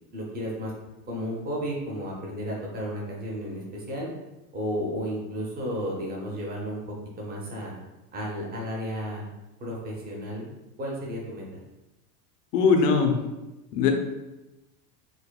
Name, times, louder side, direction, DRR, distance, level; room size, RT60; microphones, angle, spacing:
voice 1, 0.1-0.7 1.1-4.1 4.5-7.7 8.1-9.2 9.6-10.5 10.8-11.6, equal, 20° right, -2 dB, 0.8 m, -33 dB
voice 2, 12.5-13.2 13.7-13.9, left 5 dB, 85° left, 4 dB, 0.7 m, -20 dB
4.9 x 2.2 x 2.2 m, 1.0 s
supercardioid pair, 120°, 47 cm